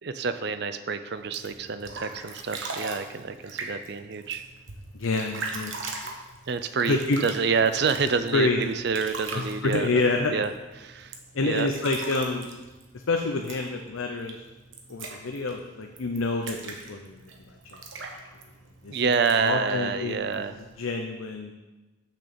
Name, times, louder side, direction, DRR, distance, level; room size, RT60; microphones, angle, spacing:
voice 1, 0.0-4.4 6.0-6.1 6.5-10.0 10.3-10.5 10.8-11.7 18.9-20.6, right 5 dB, 55° right, 11 dB, 0.5 m, -28 dB
sound 1, 1.2-20.8, right 3 dB, 70° right, 1.2 m, -41 dB
voice 2, 4.9-6.0 6.9-7.2 8.3-8.6 9.3-10.3 11.3-12.5 12.9-14.4 14.9-17.8 18.8-19.0 19.4-20.2 20.8-21.5, left 3 dB, 80° left, 3 dB, 0.6 m, -28 dB
6.6 x 6.1 x 6.9 m, 1.2 s
head